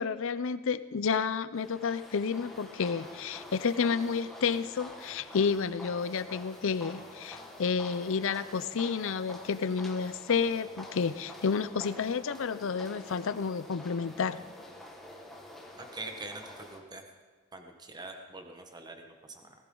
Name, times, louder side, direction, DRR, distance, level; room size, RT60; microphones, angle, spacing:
voice 1, 0.0-14.5, left 5 dB, 65° left, 14 dB, 0.5 m, -30 dB
sound 1, 1.5-16.8, left 1 dB, ahead, 1.7 m, -47 dB
voice 2, 15.8-17.0 17.5-19.5, right 2 dB, 20° right, 4 dB, 1.3 m, -44 dB
19.0 x 14.0 x 3.9 m, 1.5 s
head